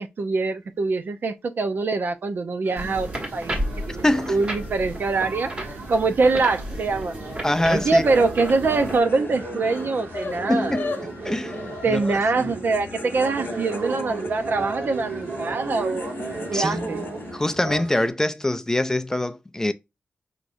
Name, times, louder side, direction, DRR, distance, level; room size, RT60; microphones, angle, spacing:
voice 1, 0.0-3.6 3.9-7.2 7.7-10.8 11.8-16.1 16.5-17.0, right 3 dB, 65° right, 0.7 m, -24 dB
sound 1, 2.6-18.1, right 3 dB, 90° right, 1.8 m, -35 dB
sound 2, 2.8-9.0, right 1 dB, 35° right, 1.5 m, -33 dB
voice 2, 4.0-4.4 7.4-8.1 10.5-10.9 11.2-12.5 16.5-16.8 17.3-19.7, left 1 dB, 15° left, 0.4 m, -24 dB
sound 3, 7.8-17.9, left 3 dB, 70° left, 0.9 m, -38 dB
4.9 x 3.0 x 2.6 m
wide cardioid pair, 90°, 4 cm